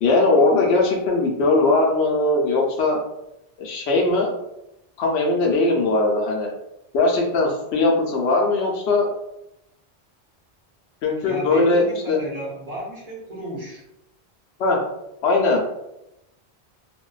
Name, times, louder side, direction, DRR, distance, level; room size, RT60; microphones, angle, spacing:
voice 1, 0.0-3.0 3.6-4.3 5.0-6.5 6.9-9.1 11.0-12.2 14.6-14.8 15.2-15.6, left 2 dB, 90° left, 0 dB, 0.9 m, -20 dB
voice 2, 11.2-13.8, equal, 45° right, -4 dB, 0.6 m, -33 dB
2.5 x 2.1 x 2.3 m, 0.85 s
omnidirectional pair, 1.1 m